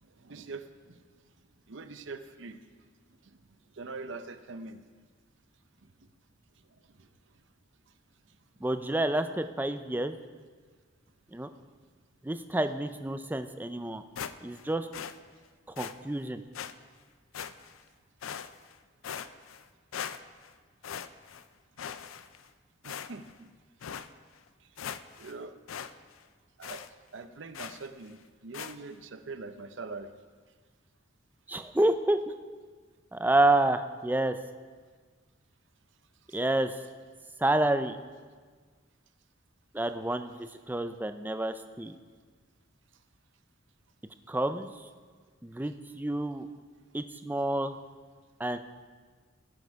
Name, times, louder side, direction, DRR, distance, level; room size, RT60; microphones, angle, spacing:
voice 1, 0.0-1.0 1.7-2.6 3.2-3.4 3.7-4.8 7.0-7.1 19.1-19.2 22.8-23.5 25.2-25.6 26.6-26.9 27.1-30.1 36.3-36.4, right 3 dB, 65° right, 9 dB, 0.7 m, -43 dB
voice 2, 8.6-10.2 11.3-11.5 12.2-14.0 14.4-14.9 15.8-16.4 31.5-32.2 33.1-34.4 36.3-36.7 37.4-38.0 39.7-40.3 40.7-42.0 44.3-44.7 45.4-46.5 46.9-47.8 48.4-48.6, right 1 dB, 10° right, 9 dB, 0.4 m, -28 dB
sound 1, 14.2-14.7 14.9-15.2 15.8-15.9 16.5-16.7 17.3-17.8 18.2-18.7 19.0-19.6 19.9-20.5 20.8-21.4 21.8-22.5 22.8-23.4 23.8-24.1 24.5-24.6 24.8-25.3 25.7-25.9 26.2-26.3 26.6-26.9 27.5-27.9 28.5-28.8, left 8 dB, 90° left, 0.5 m, -40 dB
18.0 x 6.4 x 4.7 m, 1.5 s
head